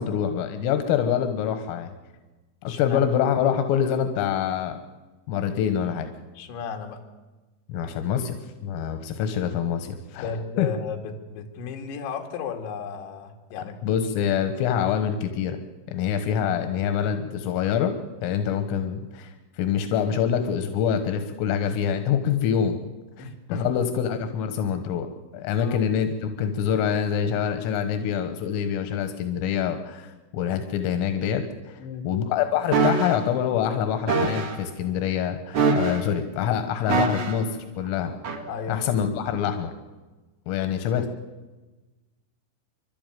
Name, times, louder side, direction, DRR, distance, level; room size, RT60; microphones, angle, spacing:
voice 1, 0.0-1.9 2.6-4.8 5.3-6.1 7.7-8.4 8.6-10.3 10.6-10.7 13.8-15.6 15.9-17.9 18.2-22.8 23.2-25.1 25.3-37.5 37.8-38.1 38.7-39.7 40.5-41.1, left 8 dB, 85° left, 8 dB, 3.9 m, -25 dB
voice 2, 2.7-3.0 6.4-7.0 10.2-13.8 23.2-23.8 25.4-25.8 31.8-32.1 38.4-38.9, left 5 dB, 70° left, 3 dB, 4.4 m, -34 dB
sound 1, 32.7-33.2 34.1-34.6 35.5-36.2 36.9-37.5 38.2-38.4, right 4 dB, 50° right, 1.6 m, -23 dB
30.0 x 12.0 x 9.3 m, 1.2 s
omnidirectional pair, 5.7 m